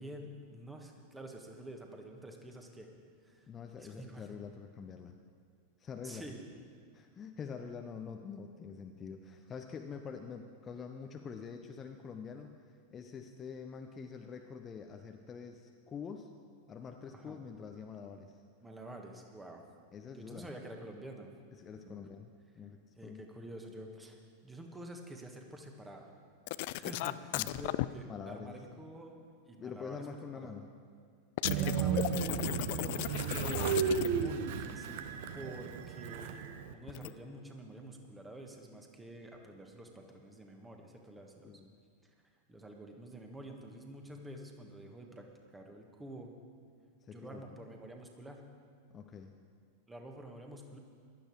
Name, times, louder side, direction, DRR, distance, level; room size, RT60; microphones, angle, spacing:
voice 1, 0.0-2.9 3.2-3.5 3.7-4.3 6.0-6.4 17.1-17.4 18.6-19.6 20.1-21.3 21.8-22.0 23.0-26.1 26.7-29.1 29.4-30.1 30.3-30.5 31.6-33.1 33.5-41.6 42.5-45.3 45.5-46.3 47.1-48.4 49.9-50.8, right 1 dB, 10° right, 2 dB, 1.6 m, -48 dB
voice 2, 3.5-5.1 5.8-6.3 6.9-16.3 16.7-18.4 19.9-20.5 21.6-23.2 27.3-27.7 28.1-28.5 29.6-30.7 41.4-41.7 47.0-47.5 48.9-49.3, left 6 dB, 25° left, 5 dB, 0.8 m, -46 dB
sound 1, 26.5-27.9 31.4-34.3 36.9-37.1, left 18 dB, 50° left, 0.4 m, -35 dB
Train, 31.4-36.7, right 7 dB, 50° right, 0.8 m, -34 dB
15.0 x 12.0 x 4.8 m, 2.1 s
figure-of-eight pair, 90°, 0 cm